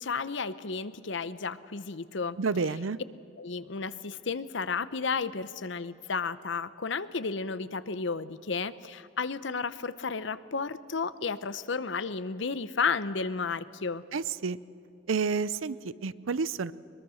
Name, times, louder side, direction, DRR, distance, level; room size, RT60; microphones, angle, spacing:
voice 1, 0.0-2.4 3.4-14.0, left 5 dB, 65° left, 15 dB, 0.8 m, -32 dB
voice 2, 2.4-3.0 14.1-14.6 15.1-16.7, right 5 dB, 85° right, 18 dB, 0.6 m, -30 dB
22.5 x 22.0 x 6.4 m, 2.6 s
head